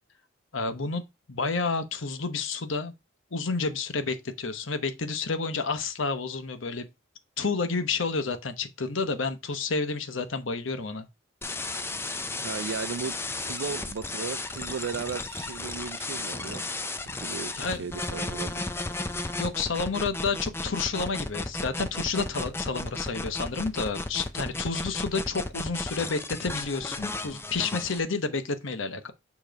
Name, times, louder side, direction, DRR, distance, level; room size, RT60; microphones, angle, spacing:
voice 1, 0.5-1.0 1.3-2.9 3.3-6.9 7.4-11.1 17.6-17.9 19.4-29.1, left 4 dB, 80° left, 0.9 m, -30 dB
sound 1, 11.4-28.0, left 2 dB, 10° left, 0.5 m, -34 dB
voice 2, 12.4-13.1 13.4-16.6 17.2-18.7, right 6 dB, 75° right, 0.4 m, -35 dB
7.1 x 3.1 x 5.1 m
head